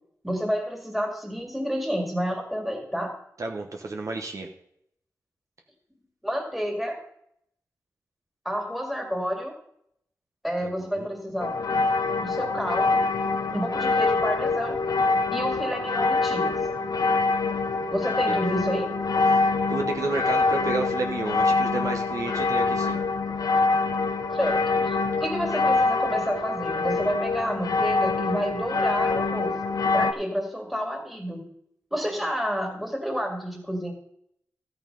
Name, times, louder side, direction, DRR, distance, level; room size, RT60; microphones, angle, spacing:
voice 1, 0.2-3.2 6.2-7.0 8.5-9.5 10.4-11.5 12.2-13.0 13.5-14.8 15.3-16.5 17.9-18.9 24.3-29.6 29.9-31.4 31.9-33.9, equal, ahead, 2 dB, 2.1 m, -29 dB
voice 2, 3.4-4.5 10.6-11.1 18.3-18.5 19.3-23.0, right 3 dB, 60° right, 3 dB, 1.2 m, -31 dB
sound 1, 11.4-30.1, left 3 dB, 75° left, 0.7 m, -25 dB
13.5 x 6.0 x 5.3 m, 0.72 s
wide cardioid pair, 105°, 6 cm